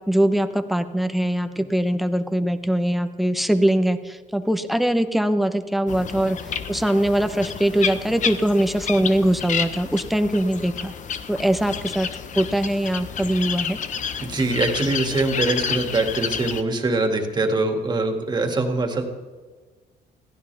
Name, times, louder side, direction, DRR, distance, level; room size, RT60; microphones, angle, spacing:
voice 1, 0.1-10.9 11.3-12.1 12.4-13.8, right 1 dB, ahead, 9 dB, 1.0 m, -22 dB
sound 1, 5.9-16.6, left 7 dB, 50° left, 1.0 m, -30 dB
voice 2, 14.2-19.0, right 2 dB, 25° right, 4 dB, 2.4 m, -23 dB
22.0 x 15.5 x 3.5 m, 1.4 s
cardioid pair, 110°, 17 cm